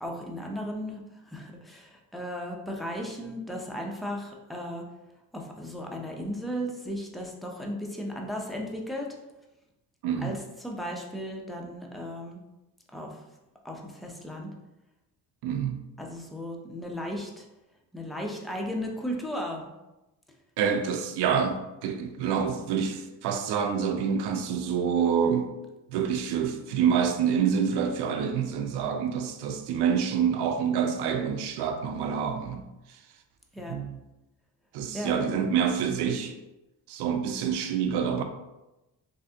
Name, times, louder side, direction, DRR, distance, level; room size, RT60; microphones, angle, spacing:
voice 1, 0.0-4.9 5.3-9.1 10.2-12.4 12.9-13.2 13.6-14.5 16.0-17.5 17.9-19.7 33.5-33.7 34.9-35.2, equal, ahead, 0.5 m, -35 dB
voice 2, 10.0-10.4 15.4-15.8 20.6-25.5 25.9-32.6 33.7-33.9 34.7-36.4 36.9-38.2, right 7 dB, 80° right, 0.5 m, -27 dB
3.3 x 2.6 x 2.7 m
cardioid pair, 90°, 39 cm